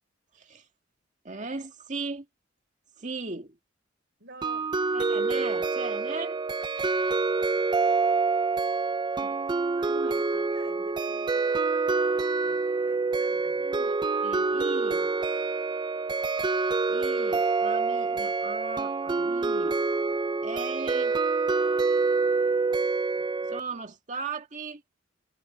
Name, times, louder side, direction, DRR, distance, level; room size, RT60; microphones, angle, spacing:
voice 1, 1.2-2.3 3.0-3.6 4.9-6.4 9.2-9.4 9.9-10.1 13.6-13.9 14.2-15.1 16.9-19.8 20.4-21.2 23.5-24.9, right 3 dB, 40° right, 2.1 m, -37 dB
voice 2, 4.2-4.8 9.6-13.7 19.8-19.9 22.2-22.5 23.2-23.8, right 3 dB, 60° right, 4.8 m, -49 dB
sound 1, 4.4-23.6, right 4 dB, 20° right, 0.3 m, -26 dB
head